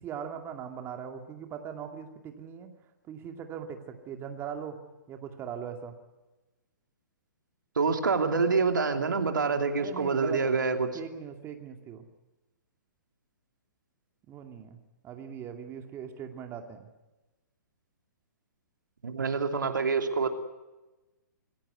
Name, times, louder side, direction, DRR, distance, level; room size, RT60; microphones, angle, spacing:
voice 1, 0.0-2.7 3.1-4.8 5.1-5.9 9.8-10.6 10.9-12.0 14.3-14.8 15.0-16.9, right 8 dB, 20° right, 5 dB, 2.3 m, -40 dB
voice 2, 7.8-10.9 19.0-20.3, right 4 dB, 75° right, 6 dB, 2.8 m, -26 dB
25.5 x 16.5 x 9.5 m, 1.1 s
figure-of-eight pair, 125°, 11 cm